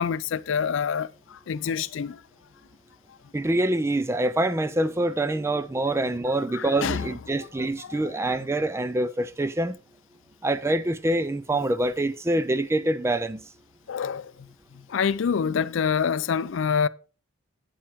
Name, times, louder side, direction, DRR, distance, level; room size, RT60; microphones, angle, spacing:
voice 1, 0.0-2.2 6.5-7.5 7.8-8.1 13.9-14.5 14.7-16.9, left 6 dB, 70° left, 0.4 m, -27 dB
voice 2, 3.3-9.8 10.4-13.4, right 1 dB, 15° right, 0.3 m, -25 dB
8.8 x 7.3 x 3.5 m
head